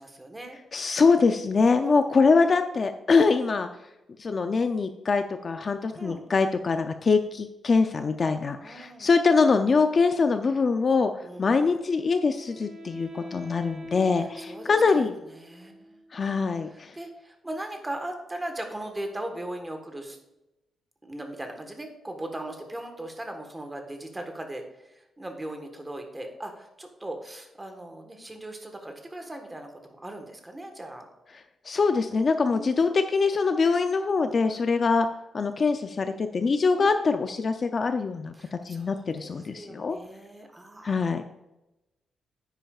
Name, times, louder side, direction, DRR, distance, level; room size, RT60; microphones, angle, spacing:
voice 1, 0.0-0.6 1.7-2.0 5.9-6.2 8.6-9.1 11.2-11.5 14.4-16.0 16.6-20.2 21.0-31.1 32.5-32.8 36.7-37.0 38.4-41.2, right 1 dB, 10° right, 4 dB, 1.3 m, -39 dB
voice 2, 0.7-3.7 4.2-11.1 11.4-15.2 16.1-17.0 31.6-35.1 35.3-40.0 40.8-41.2, left 4 dB, 35° left, 7 dB, 0.4 m, -23 dB
Wind instrument woodwind instrument, 11.3-16.4, left 1 dB, 30° right, 2.9 m, -44 dB
10.0 x 9.0 x 2.4 m, 0.95 s
wide cardioid pair, 155°, 0 cm